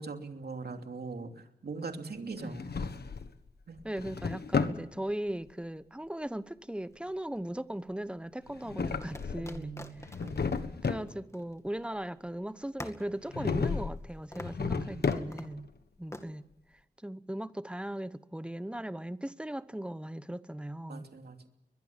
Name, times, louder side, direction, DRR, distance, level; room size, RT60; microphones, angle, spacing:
voice 1, 0.0-3.0 3.7-3.8 9.2-9.9 10.2-10.7 14.6-15.5 20.9-21.5, right 4 dB, 70° right, 3.0 m, -42 dB
Drawer open or close, 2.4-3.4 3.8-4.8 8.5-9.6 10.0-11.1 13.3-14.0 14.3-15.6, left 5 dB, 75° left, 1.5 m, -33 dB
voice 2, 3.8-9.8 10.8-15.7 16.0-16.4 17.0-21.0, right 1 dB, 5° right, 0.9 m, -38 dB
sound 1, 6.9-7.8 9.0-12.0 12.3-12.4 12.8-14.1 14.3-14.7 15.0-15.6 16.1-16.3, left 1 dB, 15° left, 2.1 m, -47 dB
22.5 x 21.0 x 7.3 m
wide cardioid pair, 100°, 17 cm